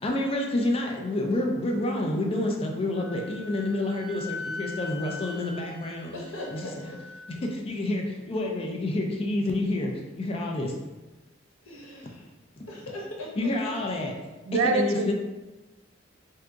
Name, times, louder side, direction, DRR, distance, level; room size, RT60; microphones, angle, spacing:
voice 1, 0.0-6.1 6.5-6.9 7.3-10.7 12.5-12.7 13.4-14.1 14.7-15.1, left 1 dB, 30° left, 1 dB, 0.4 m, -28 dB
Wind instrument woodwind instrument, 2.9-7.4, left 3 dB, 5° right, 1.5 m, -41 dB
voice 2, 6.1-6.7 11.6-12.3 12.7-13.5, left 1 dB, 85° left, -3 dB, 0.9 m, -39 dB
voice 3, 14.5-15.1, right 3 dB, 80° right, 7 dB, 0.3 m, -25 dB
2.7 x 2.4 x 3.5 m, 1.1 s
head